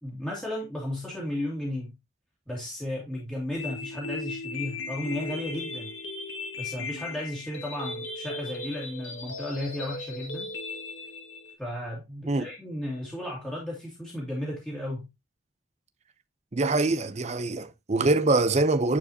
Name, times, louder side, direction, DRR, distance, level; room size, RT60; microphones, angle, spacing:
voice 1, 0.0-2.0 2.5-5.9 6.6-10.5 11.6-15.1, left 1 dB, 5° left, 2.1 m, -34 dB
sound 1, 3.5-11.5, left 3 dB, 90° left, 1.8 m, -37 dB
voice 2, 16.5-19.0, right 2 dB, 35° right, 0.6 m, -24 dB
9.2 x 4.6 x 2.8 m
head